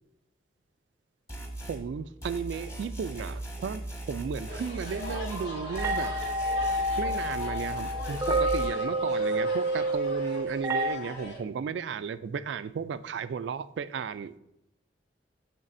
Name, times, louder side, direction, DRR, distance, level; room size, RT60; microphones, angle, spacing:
sound 1, 1.3-1.8 2.2-5.5 5.8-8.7, right 1 dB, 15° left, 1.3 m, -38 dB
voice 1, 1.7-6.2 7.0-14.4, right 6 dB, 80° right, 14 dB, 0.3 m, -34 dB
sound 2, 4.5-11.4, left 1 dB, 75° left, 2.0 m, -42 dB
sound 3, 5.3-11.0, right 1 dB, 15° right, 0.5 m, -29 dB
8.1 x 6.7 x 2.5 m, 0.86 s
head